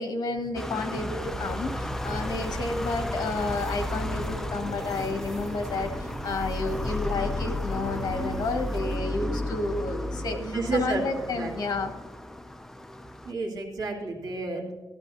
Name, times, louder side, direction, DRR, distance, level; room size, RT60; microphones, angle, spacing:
voice 1, 0.0-11.9, left 3 dB, 70° left, 5 dB, 1.5 m, -31 dB
sound 1, 0.6-13.3, left 1 dB, 5° left, 0.4 m, -33 dB
sound 2, 1.2-9.0, right 1 dB, 60° right, 3.8 m, -39 dB
voice 2, 10.4-11.0 11.4-11.5 13.3-14.7, right 3 dB, 80° right, -1 dB, 2.0 m, -30 dB
14.0 x 12.0 x 2.7 m, 1.4 s
wide cardioid pair, 165°, 7 cm